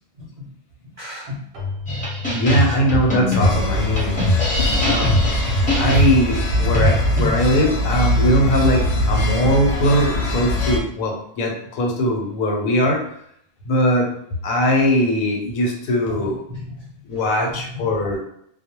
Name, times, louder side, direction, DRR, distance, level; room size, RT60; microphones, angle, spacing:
voice 1, 0.2-0.5 0.8-1.4 16.1-17.2 17.5-18.1, left 2 dB, 75° right, -5 dB, 0.3 m, -36 dB
Keyboard (musical), 1.5-6.0, left 4 dB, 50° right, 0.7 m, -36 dB
sound 1, 1.9-7.3, left 1 dB, 5° left, 0.7 m, -21 dB
voice 2, 2.3-4.2 4.8-5.2 5.8-13.0 13.7-14.1 14.4-16.4 17.0-18.2, equal, 90° left, 1 dB, 1.1 m, -20 dB
sound 2, 3.4-10.8, left 1 dB, 65° left, 0.7 m, -22 dB
2.2 x 2.1 x 2.9 m, 0.71 s
omnidirectional pair, 1.4 m